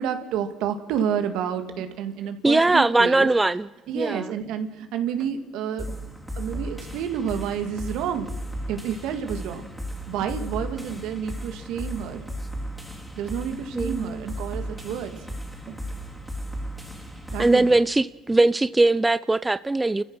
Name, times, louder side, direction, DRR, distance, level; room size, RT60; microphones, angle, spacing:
voice 1, 0.0-3.3 3.9-5.9 6.4-8.3 8.7-9.7 10.1-12.2 13.2-15.1 17.3-17.8, right 8 dB, 80° right, 2.0 m, -29 dB
Tap, 1.0-1.2 1.8-2.0 2.7-2.9 3.2-3.4 3.9-4.1 4.4-4.7 5.2-5.4 5.9-6.1 6.5-6.8 7.4-7.6 8.0-8.3 8.7-8.9 9.3-9.5 10.2-10.5 10.9-11.1 12.1-12.4 13.5-13.7 14.5-14.8 15.1-15.4 15.7-15.9, right 7 dB, 60° right, 3.2 m, -45 dB
voice 2, 2.4-3.7 3.9-4.3 13.7-14.3 17.4-20.0, right 2 dB, 15° right, 0.6 m, -20 dB
sound 1, 5.8-17.8, equal, ahead, 3.5 m, -35 dB
29.5 x 15.0 x 6.2 m
supercardioid pair, 75°, 0 cm